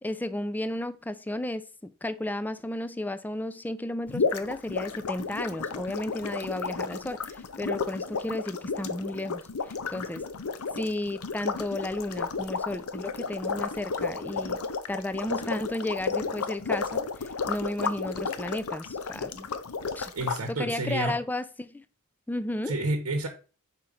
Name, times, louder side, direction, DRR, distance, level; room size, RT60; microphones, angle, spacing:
voice 1, 0.0-10.2 10.7-14.6 14.9-19.5 19.9-20.1 20.5-21.8 22.3-22.8, left 1 dB, 10° left, 0.4 m, -33 dB
sound 1, 4.1-20.4, left 5 dB, 75° left, 0.6 m, -33 dB
voice 2, 20.1-21.2 22.7-23.3, right 2 dB, 70° right, 0.9 m, -29 dB
5.5 x 4.4 x 4.9 m
head